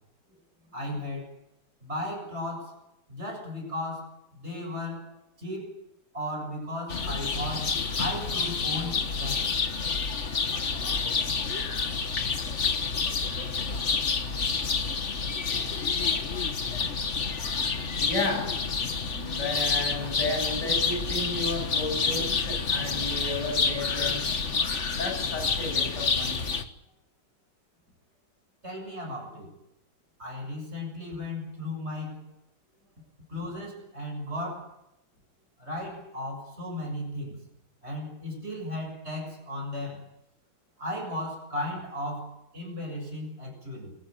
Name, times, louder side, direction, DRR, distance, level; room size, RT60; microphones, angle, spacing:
voice 1, 0.7-1.4 1.8-2.8 3.1-5.8 6.1-9.5 28.6-29.5 30.2-32.3 33.3-34.8 35.6-37.4 37.8-40.1 40.8-44.0, left 1 dB, 35° right, 2 dB, 7.5 m, -36 dB
sound 1, 6.9-26.6, left 5 dB, 45° left, 1.6 m, -28 dB
voice 2, 18.0-18.7 19.0-24.3 24.9-26.4, left 2 dB, 90° left, 1 dB, 8.4 m, -33 dB
23.5 x 14.0 x 9.7 m, 0.83 s
omnidirectional pair, 1.8 m